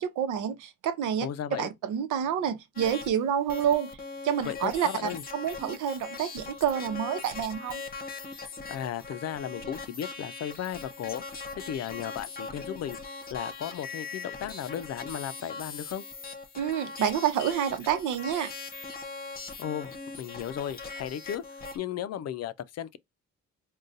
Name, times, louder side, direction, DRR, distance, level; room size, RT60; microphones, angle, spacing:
voice 1, 0.0-1.3 1.6-3.9 4.2-7.8 16.5-18.5, right 9 dB, 85° right, 0.8 m, -28 dB
voice 2, 1.2-1.7 4.4-5.2 8.7-11.2 11.5-16.0 19.6-23.0, left 10 dB, 60° left, 0.5 m, -35 dB
sound 1, 2.8-3.1 3.5-21.8, left 4 dB, 30° left, 0.8 m, -41 dB
3.8 x 2.3 x 2.5 m
cardioid pair, 90°, 30 cm